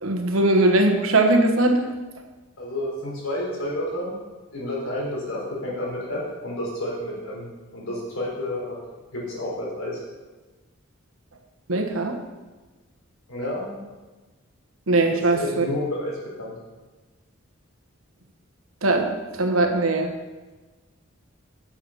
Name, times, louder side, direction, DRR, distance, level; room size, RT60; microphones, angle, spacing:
voice 1, 0.0-1.9 11.7-12.2 14.9-15.6 18.8-20.1, right 2 dB, 75° right, 4 dB, 1.2 m, -20 dB
voice 2, 2.6-4.2 4.5-8.8 9.1-10.0 13.3-13.9 15.3-16.5, left 1 dB, 80° left, -4 dB, 3.7 m, -30 dB
8.7 x 7.1 x 5.6 m, 1.2 s
head